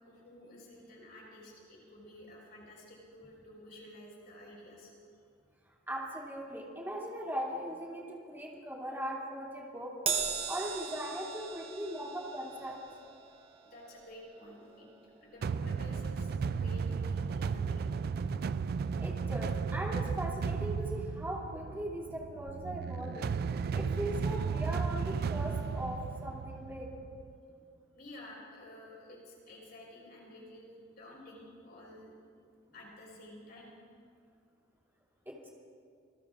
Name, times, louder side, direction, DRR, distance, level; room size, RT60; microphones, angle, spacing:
voice 1, 0.0-4.9 13.6-16.3 16.6-17.8 27.9-32.1 32.7-33.8, left 1 dB, 55° left, -3 dB, 4.4 m, -51 dB
voice 2, 5.9-9.9 10.5-12.7 19.0-23.3 23.7-26.9 35.3-35.5, equal, 10° right, -3 dB, 2.7 m, -39 dB
Crash cymbal, 10.1-16.7 17.0-17.2 18.3-18.4, right 6 dB, 30° right, 1.2 m, -40 dB
sound 1, 15.4-27.3, right 5 dB, 50° right, 0.3 m, -34 dB
27.0 x 20.5 x 2.5 m, 2.3 s
head